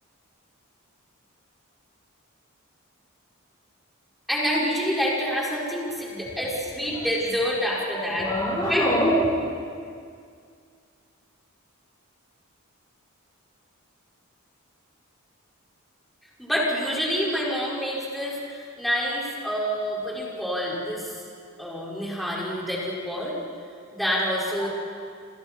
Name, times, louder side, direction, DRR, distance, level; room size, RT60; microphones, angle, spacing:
voice 1, 4.3-8.3 8.7-8.8 16.4-21.2 21.6-23.4 23.9-24.7, equal, ahead, -6 dB, 5.8 m, -27 dB
voice 2, 8.1-9.3 24.6-24.7, equal, 20° left, -5 dB, 3.7 m, -24 dB
28.5 x 28.0 x 4.6 m, 2.2 s
head